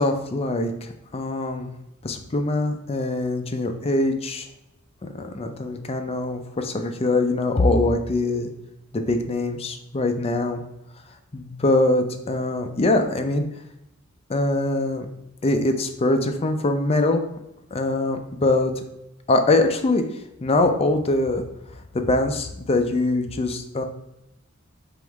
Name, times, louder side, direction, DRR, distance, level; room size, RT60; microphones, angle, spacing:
voice 1, 0.0-1.7 2.0-4.5 5.0-8.5 8.9-10.6 11.3-13.4 14.3-15.1 15.4-17.2 17.7-18.7 19.3-20.0 20.4-21.4 21.9-23.8, left 2 dB, 30° left, 5 dB, 0.5 m, -23 dB
3.7 x 3.0 x 4.5 m, 0.85 s
head